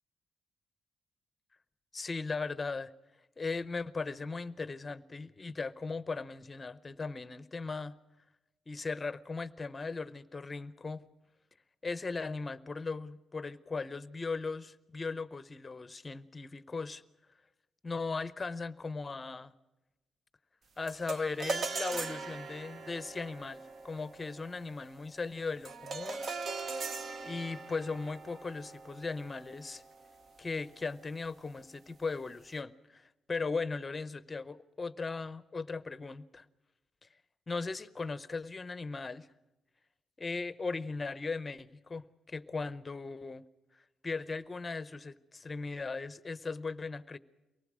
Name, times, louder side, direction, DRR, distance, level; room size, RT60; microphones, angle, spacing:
voice 1, 1.9-2.9 3.4-7.9 8.7-11.0 11.8-17.0 17.8-19.5 20.8-26.3 26.5-26.8 27.2-29.8 30.4-36.4 37.5-39.3 40.2-43.5 44.0-47.2, left 4 dB, 25° left, 15 dB, 0.7 m, -38 dB
sound 1, 20.9-30.4, right 4 dB, 45° right, 0.8 m, -41 dB
24.0 x 19.0 x 6.2 m, 1.0 s
cardioid pair, 135°, 0 cm